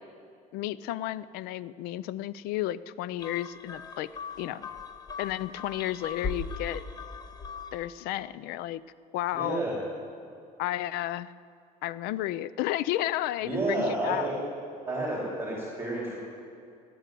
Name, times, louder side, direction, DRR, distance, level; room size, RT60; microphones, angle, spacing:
voice 1, 0.5-4.1 4.4-4.7 5.2-6.8 7.7-8.8 9.1-9.6 10.6-11.3 11.8-14.3, left 14 dB, 85° left, 18 dB, 0.5 m, -32 dB
sound 1, 3.2-8.0, left 4 dB, 25° left, 0.9 m, -39 dB
voice 2, 9.3-9.7 13.4-14.3 14.8-16.2, right 2 dB, 15° right, -4 dB, 3.4 m, -30 dB
18.5 x 7.9 x 9.2 m, 2.4 s
cardioid pair, 125°, 15 cm